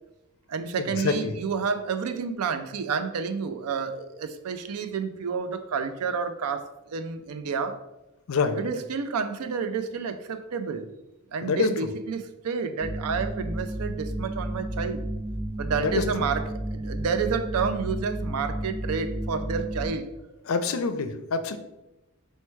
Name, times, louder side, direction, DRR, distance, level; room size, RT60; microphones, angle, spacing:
voice 1, 0.5-7.8 8.5-10.9 11.3-15.1 15.6-20.1, right 5 dB, 85° right, 0.4 m, -30 dB
voice 2, 11.4-11.7 16.0-16.1 20.5-21.6, left 4 dB, 70° left, 0.4 m, -25 dB
sound 1, 12.8-19.9, right 1 dB, 5° right, 0.4 m, -32 dB
4.3 x 2.2 x 4.5 m
head